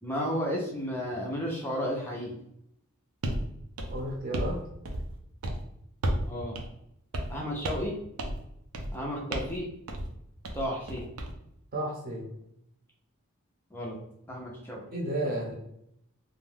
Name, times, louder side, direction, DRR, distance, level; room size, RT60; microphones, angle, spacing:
voice 1, 0.0-2.3 6.3-6.6 7.3-7.9 8.9-9.7 10.5-11.1 13.7-14.0 14.3-14.8, equal, 10° left, -3 dB, 0.4 m, -33 dB
sound 1, 3.2-3.4 3.8-4.6 4.8-5.2 5.4-5.6 6.0-6.3 6.5-6.7 7.1-7.4 7.6-7.9 8.2-8.4 8.7-9.0 9.3-9.6 9.9-10.1 10.4-11.3, right 1 dB, 75° right, 0.5 m, -32 dB
voice 2, 3.9-4.6 11.7-12.3 14.9-15.5, right 1 dB, 40° right, -2 dB, 0.7 m, -32 dB
2.5 x 2.2 x 3.3 m, 0.76 s
head